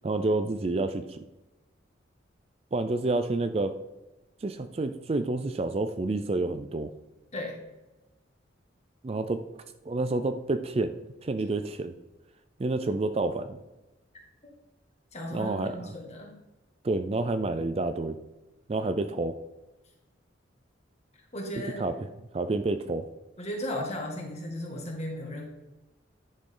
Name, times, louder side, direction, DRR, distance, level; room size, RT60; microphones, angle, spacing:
voice 1, 0.0-1.2 2.7-3.7 4.4-6.9 9.0-9.4 9.9-10.9 11.2-11.9 12.6-13.6 15.3-15.9 16.8-18.2 18.7-19.3 21.8-21.9 22.3-23.1, right 2 dB, 30° right, 9 dB, 0.4 m, -29 dB
voice 2, 15.1-16.3 21.3-21.8 23.4-25.4, left 1 dB, 35° left, -1 dB, 2.0 m, -35 dB
10.5 x 6.5 x 3.8 m, 1.0 s
head